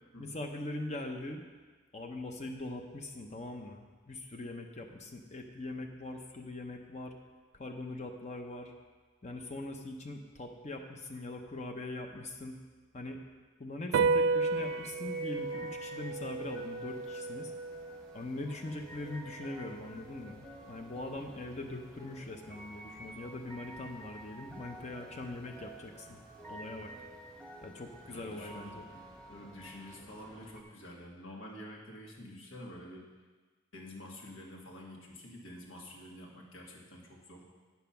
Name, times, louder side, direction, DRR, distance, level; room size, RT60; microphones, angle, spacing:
voice 1, 0.2-1.4 1.9-7.1 7.5-8.7 9.2-12.5 12.9-13.2 13.6-17.5 18.1-26.2 26.5-26.9 27.6-28.9, left 2 dB, 35° left, 3 dB, 0.7 m, -42 dB
sound 1, 13.9-20.7, right 4 dB, 80° right, 0.3 m, -34 dB
sound 2, 14.5-30.6, right 1 dB, 5° left, 1.1 m, -51 dB
voice 2, 28.0-33.1 33.7-37.5, left 1 dB, 80° left, -2 dB, 2.0 m, -48 dB
9.3 x 7.2 x 5.7 m, 1.4 s
head